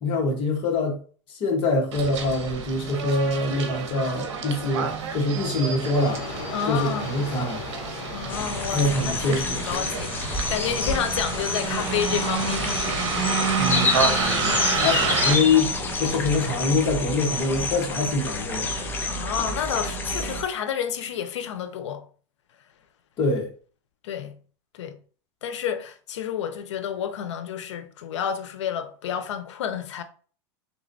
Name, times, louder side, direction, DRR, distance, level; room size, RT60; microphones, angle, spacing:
voice 1, 0.0-1.0 1.3-6.2 6.7-7.6 8.7-9.8 13.6-15.7 16.0-18.7 23.2-23.5, left 2 dB, 35° left, 1.1 m, -25 dB
Bus, 1.9-15.3, right 6 dB, 85° right, 0.9 m, -30 dB
sound 1, 5.9-15.4, left 6 dB, 60° left, 0.9 m, -39 dB
voice 2, 6.5-7.2 8.1-12.7 19.1-22.1 24.0-24.4 24.7-25.0 25.4-30.0, left 8 dB, 90° left, 0.6 m, -30 dB
sound 2, 8.3-20.4, left 2 dB, 15° left, 0.5 m, -28 dB
3.8 x 3.0 x 2.6 m
supercardioid pair, 150°, 15 cm